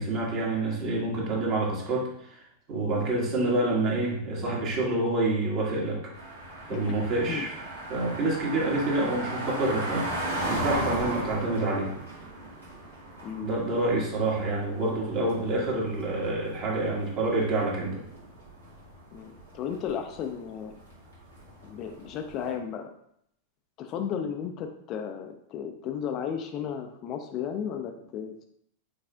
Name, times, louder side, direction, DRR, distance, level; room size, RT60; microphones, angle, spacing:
voice 1, 0.0-2.4 2.7-6.1 6.7-7.5 7.9-10.1 10.5-11.9 13.4-18.0, right 2 dB, 40° right, -3 dB, 1.5 m, -27 dB
sound 1, 6.1-22.5, right 1 dB, 75° right, 1.7 m, -37 dB
voice 2, 19.1-20.7 21.6-22.9 23.8-28.5, left 8 dB, 35° left, 5 dB, 0.4 m, -34 dB
5.2 x 4.0 x 2.3 m, 0.71 s
figure-of-eight pair, 90°, 0 cm